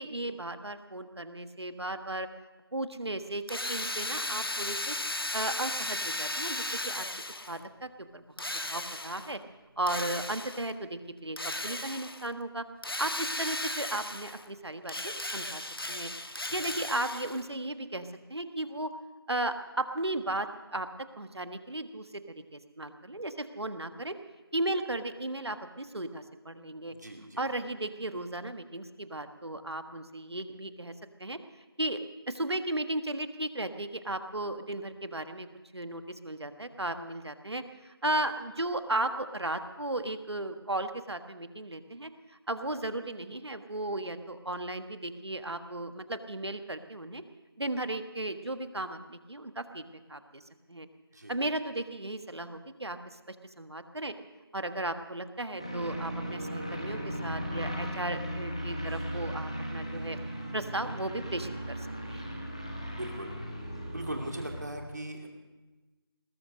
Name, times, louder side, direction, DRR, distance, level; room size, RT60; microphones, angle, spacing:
voice 1, 0.0-2.3 2.7-4.9 5.3-7.1 7.5-8.2 8.6-9.4 9.8-12.6 13.0-15.6 15.9-16.1 16.5-18.9 19.3-20.9 21.2-24.2 24.5-26.9 27.4-30.9 31.2-31.4 31.8-32.0 32.3-35.5 35.7-42.1 42.5-47.2 47.6-49.8 50.1-50.4 50.7-50.9 51.3-53.0 53.3-54.1 54.5-60.3 60.5-62.3, right 1 dB, 85° right, 9 dB, 1.5 m, -35 dB
Drill, 3.5-7.6 8.4-9.3 9.9-10.7 11.4-12.3 12.8-14.5 14.8-17.5, left 2 dB, 65° left, 1.3 m, -36 dB
voice 2, 26.9-27.4 51.1-51.3 62.9-63.3 63.9-65.3, right 1 dB, 45° right, 2 dB, 2.5 m, -39 dB
sound 1, 55.6-64.6, equal, 15° left, 1.1 m, -37 dB
20.0 x 11.0 x 6.5 m, 1.2 s
figure-of-eight pair, 180°, 13 cm